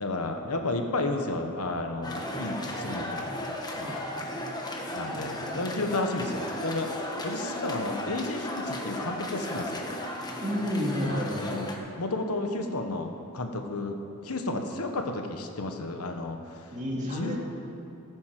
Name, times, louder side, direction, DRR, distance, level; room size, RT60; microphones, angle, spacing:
voice 1, 0.0-3.3 3.8-4.1 4.9-9.9 11.0-11.7 12.0-14.0 14.2-17.4, left 2 dB, 80° left, 5 dB, 1.2 m, -32 dB
sound 1, 2.0-11.8, left 1 dB, 20° left, 1.2 m, -35 dB
voice 2, 10.4-11.6 16.7-17.4, equal, 35° right, -3 dB, 2.5 m, -30 dB
14.5 x 9.6 x 6.0 m, 2.9 s
head